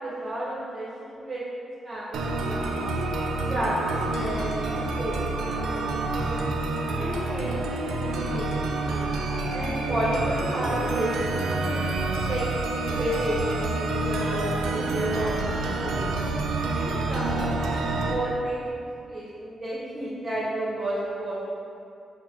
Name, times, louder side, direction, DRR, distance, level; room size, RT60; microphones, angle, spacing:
voice 1, 0.0-1.4 1.8-3.0 3.5-6.0 7.0-8.9 9.5-11.9 12.2-16.2 16.7-17.7 18.1-21.5, right 1 dB, 40° right, -9 dB, 0.9 m, -32 dB
sound 1, 2.1-18.1, right 2 dB, 80° right, 0.3 m, -28 dB
3.8 x 2.1 x 4.3 m, 2.5 s
supercardioid pair, 60°, 0 cm